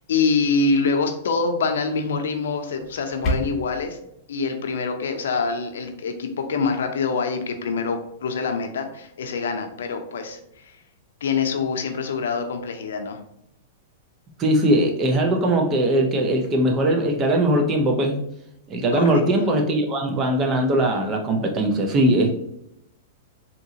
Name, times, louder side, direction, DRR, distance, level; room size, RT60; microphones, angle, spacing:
voice 1, 0.0-4.0 4.3-10.7 11.2-13.2 18.9-19.2, left 4 dB, 85° left, 6 dB, 0.6 m, -25 dB
sound 1, 2.8-3.8, left 1 dB, 30° left, 0.8 m, -28 dB
voice 2, 14.4-18.2 18.7-22.3, right 1 dB, 25° right, 3 dB, 0.7 m, -20 dB
3.7 x 2.9 x 2.8 m, 0.79 s
hypercardioid pair, 135°, 0 cm